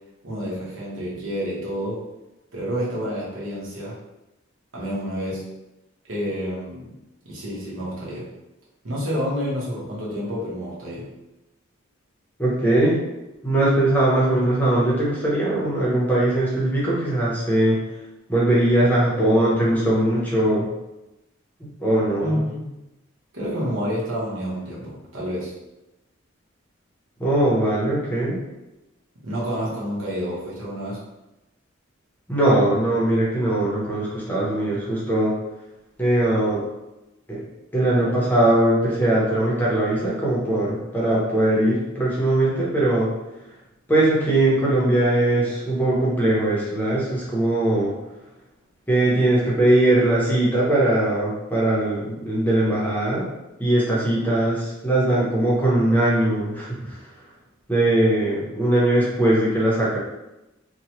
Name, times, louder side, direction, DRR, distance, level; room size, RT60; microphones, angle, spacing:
voice 1, 0.2-2.0 2.5-4.0 4.7-5.5 6.1-6.9 7.2-8.3 8.8-11.1 22.2-22.8 23.3-25.5 29.2-31.0, equal, 75° right, -6 dB, 1.0 m, -29 dB
voice 2, 12.4-13.0 13.4-17.8 18.3-20.7 21.6-22.4 27.2-28.4 32.3-35.3 36.0-36.6 37.3-37.4 37.7-43.1 43.9-47.9 48.9-53.3 53.6-57.0 57.7-60.0, right 1 dB, 10° left, -6 dB, 0.6 m, -20 dB
2.9 x 2.1 x 2.8 m, 0.98 s
head